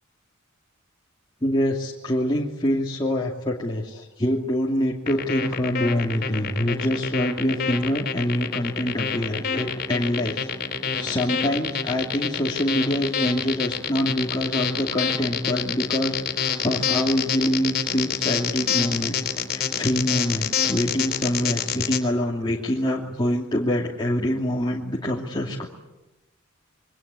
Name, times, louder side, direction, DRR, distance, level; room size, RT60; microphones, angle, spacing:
voice 1, 1.4-10.5 11.0-19.2 19.5-25.6, equal, 20° left, -3 dB, 2.7 m, -25 dB
sound 1, 5.1-22.0, left 7 dB, 50° left, 4.0 m, -27 dB
27.5 x 23.0 x 8.4 m, 1.0 s
head